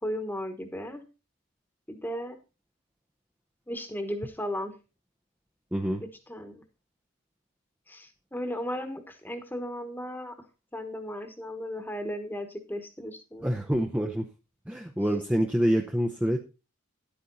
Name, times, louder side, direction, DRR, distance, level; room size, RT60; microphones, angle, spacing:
voice 1, 0.0-1.0 1.9-2.4 3.7-4.8 6.3-6.6 7.9-10.3 10.7-13.5, equal, 10° left, 7 dB, 1.3 m, -35 dB
voice 2, 5.7-6.0 13.4-14.3 14.7-16.4, equal, 5° right, 2 dB, 0.7 m, -26 dB
11.0 x 8.6 x 4.1 m, 0.30 s
head